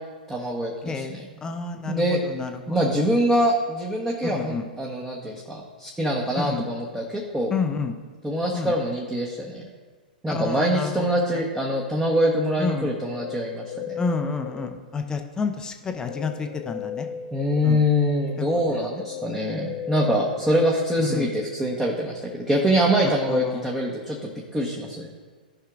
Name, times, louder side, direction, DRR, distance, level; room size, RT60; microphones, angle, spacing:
voice 1, 0.3-1.0 1.9-2.2 2.7-7.5 8.2-9.6 10.2-14.0 17.3-25.1, equal, 10° right, -4 dB, 1.1 m, -24 dB
voice 2, 0.8-2.8 4.2-4.6 6.4-6.7 7.5-8.0 8.5-8.7 10.3-10.9 11.3-11.5 12.6-12.9 14.0-17.1 17.6-17.8 18.4-19.0 21.0-21.3 23.3-23.7, left 4 dB, 15° left, 5 dB, 0.7 m, -30 dB
Guitar, 12.6-15.1 15.9-21.3, left 8 dB, 50° left, 0.7 m, -37 dB
14.5 x 5.6 x 2.5 m, 1.4 s
figure-of-eight pair, 105°, 5 cm